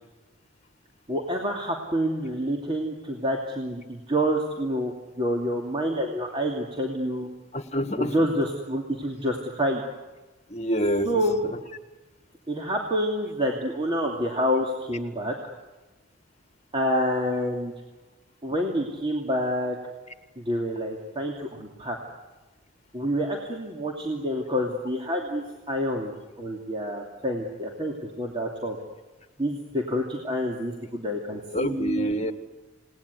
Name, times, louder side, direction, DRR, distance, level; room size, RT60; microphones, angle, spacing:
voice 1, 1.1-7.3 8.0-9.8 11.0-11.4 12.5-15.3 16.7-17.7 18.4-19.8 20.4-22.0 22.9-26.1 26.4-28.8 29.4-32.1, equal, 25° right, 0 dB, 2.8 m, -28 dB
voice 2, 7.5-8.3 10.5-11.6 31.5-32.3, equal, 35° left, 9 dB, 1.9 m, -27 dB
29.0 x 19.5 x 9.6 m, 1.2 s
head